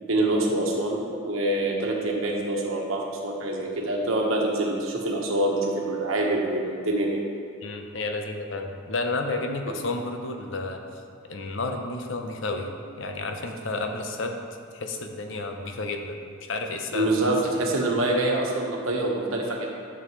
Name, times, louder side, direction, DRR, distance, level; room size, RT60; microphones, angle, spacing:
voice 1, 0.0-1.0 1.2-7.2 16.9-19.7, right 1 dB, 80° right, -1 dB, 1.2 m, -25 dB
voice 2, 7.6-10.9 11.3-14.4 14.7-17.1, left 2 dB, 65° left, 4 dB, 0.7 m, -31 dB
11.0 x 6.2 x 3.1 m, 2.3 s
head